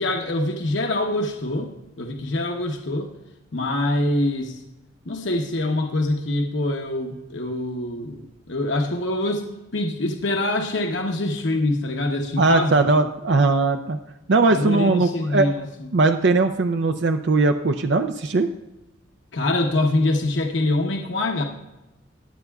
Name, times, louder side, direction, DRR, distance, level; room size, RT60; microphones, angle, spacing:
voice 1, 0.0-1.7 2.0-3.1 3.5-4.6 5.1-9.4 9.7-12.8 14.5-15.9 19.3-21.4, left 2 dB, 65° left, 2 dB, 1.0 m, -24 dB
voice 2, 12.4-14.0 14.3-15.5 15.9-18.5, right 3 dB, 60° right, 7 dB, 0.5 m, -19 dB
22.0 x 7.9 x 2.4 m, 0.98 s
head